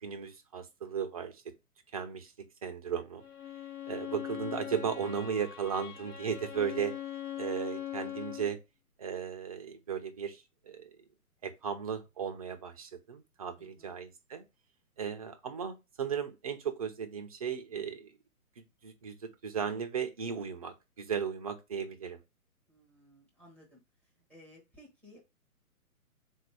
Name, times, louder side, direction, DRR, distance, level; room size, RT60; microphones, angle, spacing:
voice 1, 0.0-1.5 1.9-2.3 2.6-3.2 3.9-7.0 7.4-8.6 9.0-11.0 11.4-14.4 15.0-18.1 18.6-22.2, right 7 dB, 25° right, 0.5 m, -36 dB
Bowed string instrument, 3.2-8.6, left 11 dB, 90° left, 1.0 m, -41 dB
voice 2, 13.6-14.0 22.7-25.2, left 1 dB, 5° left, 0.8 m, -58 dB
3.9 x 2.6 x 4.7 m
figure-of-eight pair, 130°, 44 cm